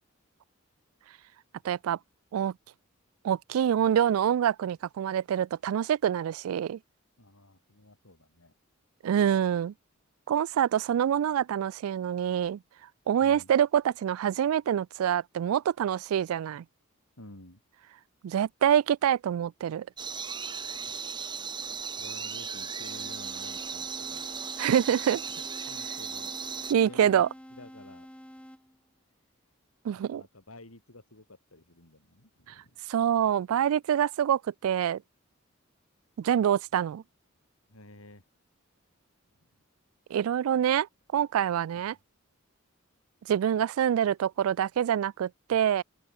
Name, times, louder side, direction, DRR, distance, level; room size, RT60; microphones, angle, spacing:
voice 1, 1.6-2.0 2.3-2.5 3.2-6.8 9.0-9.7 10.3-12.6 13.1-16.6 18.2-19.9 24.6-25.2 26.7-27.3 29.8-30.2 32.9-35.0 36.2-37.0 40.1-40.9 41.1-42.0 43.3-45.8, right 9 dB, 85° right, 0.3 m, -26 dB
voice 2, 7.2-8.5 13.2-13.5 17.2-17.6 20.8-21.0 22.0-24.3 25.7-26.4 26.8-27.2 27.5-28.1 29.9-32.8 37.7-38.2 39.4-39.5 41.7-42.0, left 1 dB, 85° left, 5.6 m, -51 dB
sound 1, 20.0-26.7, right 6 dB, 20° right, 1.2 m, -37 dB
sound 2, 22.9-28.9, equal, 5° left, 2.8 m, -49 dB
open air
head